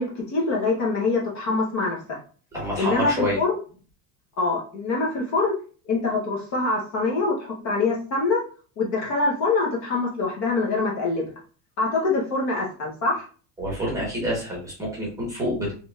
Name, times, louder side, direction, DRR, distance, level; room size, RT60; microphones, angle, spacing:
voice 1, 0.0-2.2 2.8-3.5 4.4-5.6 5.9-8.4 8.8-11.3 11.8-13.2, left 3 dB, 35° left, -2 dB, 0.8 m, -24 dB
voice 2, 2.5-3.4 13.6-15.7, equal, 5° right, -4 dB, 0.9 m, -27 dB
3.9 x 3.1 x 2.3 m, 0.40 s
cardioid pair, 175°, 48 cm